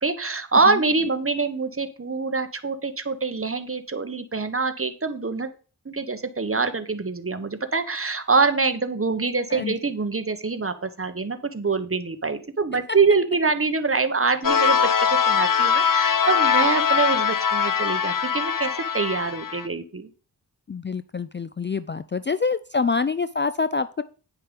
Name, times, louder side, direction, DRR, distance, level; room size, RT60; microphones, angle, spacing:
voice 1, 0.0-5.5 5.8-20.1, right 4 dB, 35° right, 9 dB, 1.2 m, -25 dB
sound 1, 14.4-19.7, left 7 dB, 55° left, 0.8 m, -22 dB
voice 2, 20.7-24.0, left 4 dB, 30° left, 13 dB, 0.4 m, -26 dB
9.8 x 5.6 x 5.2 m, 0.37 s
wide cardioid pair, 65°, 40 cm